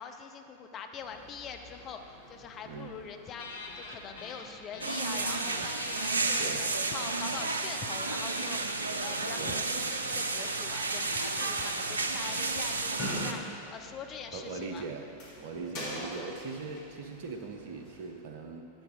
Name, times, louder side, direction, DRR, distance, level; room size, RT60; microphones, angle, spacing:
voice 1, 0.0-2.0 2.3-6.6 6.9-14.9 15.6-15.7, left 6 dB, 30° left, 5 dB, 0.6 m, -44 dB
sound 1, 1.0-18.1, equal, 50° left, 2.4 m, -47 dB
sound 2, 3.4-4.5 4.7-13.0, left 3 dB, 65° left, 0.8 m, -45 dB
sound 3, 4.8-13.3, right 3 dB, 75° right, 0.5 m, -32 dB
voice 2, 14.3-15.1 15.4-18.7, right 4 dB, 50° right, 4 dB, 0.9 m, -40 dB
10.5 x 8.1 x 3.9 m, 2.6 s
figure-of-eight pair, 90°, 0 cm